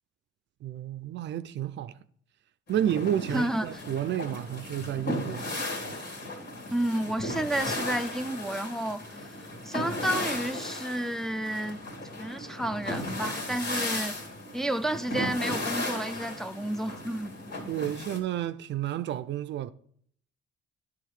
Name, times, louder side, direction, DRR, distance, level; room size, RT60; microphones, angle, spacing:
voice 1, 0.6-2.0 2.7-5.5 17.7-19.7, right 11 dB, 65° right, 0.5 m, -31 dB
sound 1, 2.7-18.2, left 1 dB, 55° left, 2.5 m, -35 dB
voice 2, 3.3-3.8 6.7-11.8 12.2-14.1 14.5-17.3, right 1 dB, ahead, 0.5 m, -31 dB
10.5 x 3.5 x 4.8 m
cardioid pair, 90°, 20 cm